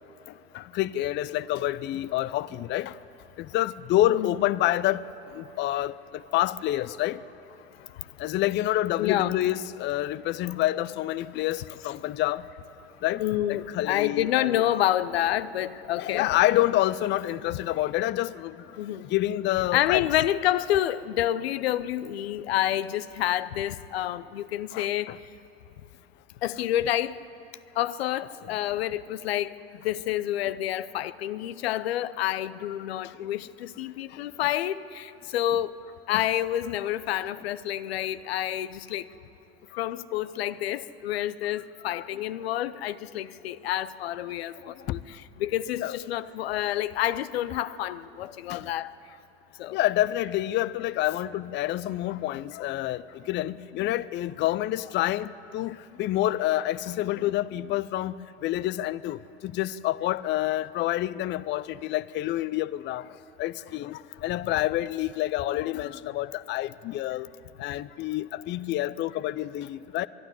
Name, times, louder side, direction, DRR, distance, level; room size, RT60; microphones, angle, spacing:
voice 1, 0.5-3.0 3.4-5.0 5.3-7.2 8.2-12.5 13.0-13.2 13.5-14.6 16.0-18.6 19.1-20.0 24.7-25.2 36.1-36.2 41.9-42.0 44.9-45.0 45.8-46.0 48.5-48.7 49.7-63.0 63.4-67.3 67.6-70.1, left 14 dB, 35° left, 0.5 m, -28 dB
voice 2, 9.0-9.3 13.2-16.3 18.8-19.1 19.7-25.1 26.4-27.2 27.8-29.5 29.8-35.7 36.1-39.0 39.8-48.9 49.6-49.8, left 12 dB, 75° left, 0.7 m, -28 dB
23.0 x 12.0 x 10.0 m
hypercardioid pair, 85°, 31 cm